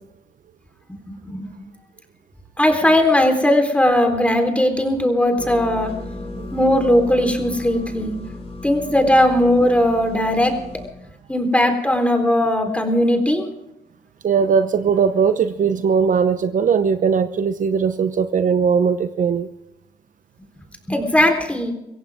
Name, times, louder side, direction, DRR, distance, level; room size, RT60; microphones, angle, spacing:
voice 1, 1.1-1.5 2.6-5.9 6.5-8.1 8.6-10.5 11.3-13.5 20.9-21.7, left 1 dB, 10° left, 4 dB, 3.8 m, -18 dB
sound 1, 5.4-10.9, left 2 dB, 40° left, 5.0 m, -35 dB
voice 2, 14.2-19.5, right 6 dB, 55° right, 10 dB, 0.8 m, -19 dB
24.0 x 16.0 x 3.6 m, 0.89 s
cardioid pair, 80°, 16 cm